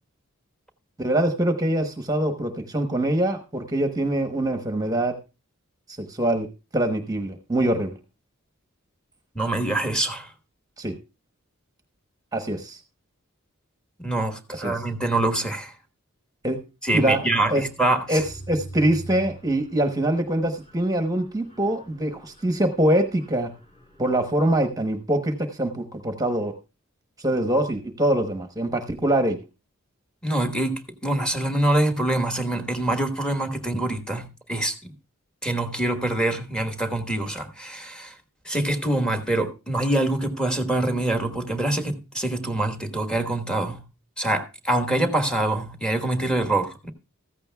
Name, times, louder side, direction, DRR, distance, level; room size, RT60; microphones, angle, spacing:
voice 1, 1.0-5.1 5.9-6.5 6.7-7.9 10.8-10.9 12.3-12.8 14.5-14.7 16.4-16.6 16.9-17.2 17.5-17.6 18.1-23.5 24.0-26.5 27.2-29.4, right 1 dB, 15° right, 1.0 m, -24 dB
voice 2, 9.3-10.3 14.0-15.7 16.8-18.2 30.2-34.9 35.4-38.1 38.4-43.8 44.2-46.9, right 1 dB, 5° left, 1.3 m, -25 dB
Mechanisms, 18.0-24.7, right 1 dB, 30° left, 4.2 m, -44 dB
15.0 x 14.0 x 2.3 m
head